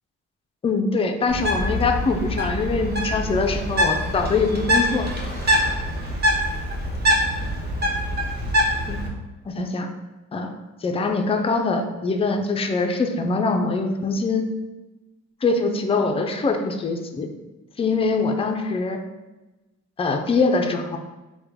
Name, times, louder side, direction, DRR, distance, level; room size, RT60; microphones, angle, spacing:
voice 1, 0.6-5.1 8.9-9.0 9.5-9.9 10.3-10.5 10.8-14.5 15.4-17.3 17.8-19.0 20.0-21.0, left 3 dB, 20° left, 4 dB, 0.3 m, -23 dB
Bird, 1.3-9.1, equal, 35° right, 0.8 m, -24 dB
3.1 x 2.2 x 3.5 m, 1.1 s
cardioid pair, 90°, 30 cm